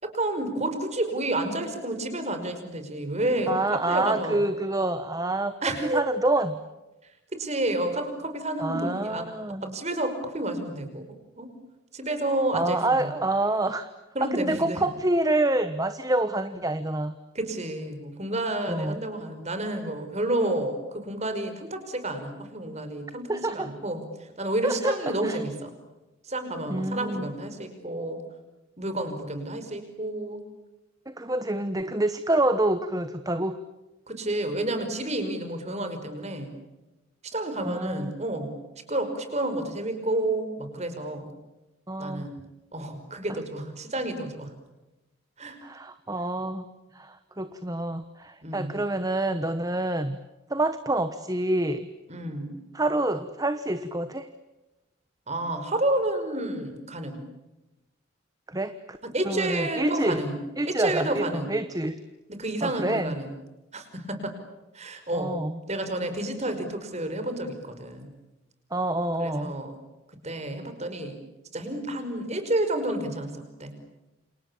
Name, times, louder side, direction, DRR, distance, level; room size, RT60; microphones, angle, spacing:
voice 1, 0.0-4.4 5.6-6.0 7.3-9.3 9.6-11.0 11.4-11.5 11.9-13.1 14.2-14.8 17.3-25.7 26.2-28.2 28.8-30.4 34.1-36.5 37.3-38.5 38.9-41.3 42.0-42.4 42.7-44.5 45.4-45.6 48.4-48.7 52.1-52.6 55.3-57.2 59.0-60.4 60.7-61.5 62.3-63.3 63.7-64.3 64.7-65.3 65.7-68.1 69.2-69.7 70.2-71.2 71.5-73.7, right 1 dB, 35° right, 8 dB, 5.3 m, -30 dB
voice 2, 3.5-5.5 5.8-6.6 8.6-9.7 12.5-13.9 14.2-17.1 18.7-18.9 23.3-23.7 24.6-25.4 26.7-27.3 31.1-33.6 37.6-38.1 41.9-42.3 45.6-46.7 46.9-50.2 50.5-51.9 52.7-54.3 58.5-59.0 59.2-60.2 60.6-62.0 62.6-63.1 65.1-65.6 68.7-69.5, right 2 dB, 20° right, 10 dB, 1.1 m, -27 dB
29.0 x 28.0 x 7.2 m, 1.0 s
head